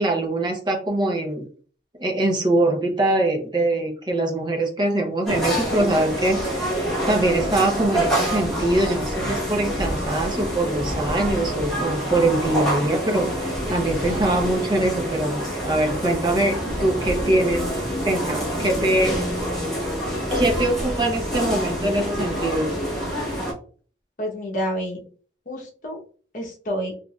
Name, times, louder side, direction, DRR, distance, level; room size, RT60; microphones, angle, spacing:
voice 1, 0.0-1.5 2.0-6.8 7.1-15.4 15.6-17.6 18.0-19.2 20.3-22.7, right 1 dB, 25° right, 1 dB, 0.7 m, -23 dB
sound 1, 5.3-23.5, equal, ahead, 1.1 m, -26 dB
voice 2, 24.2-25.0 25.5-26.0 26.3-26.9, equal, 45° left, -1 dB, 0.9 m, -28 dB
3.9 x 2.5 x 2.3 m, 0.43 s
head